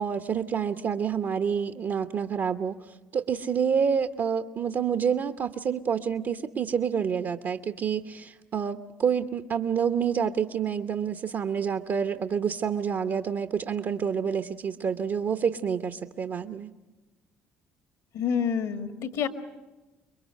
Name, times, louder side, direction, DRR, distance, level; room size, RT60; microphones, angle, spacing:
voice 1, 0.0-16.7, right 7 dB, 55° right, 8 dB, 0.9 m, -28 dB
voice 2, 18.1-19.3, left 7 dB, 70° left, 7 dB, 1.8 m, -28 dB
25.5 x 22.5 x 6.5 m, 1.1 s
hypercardioid pair, 55°, 6 cm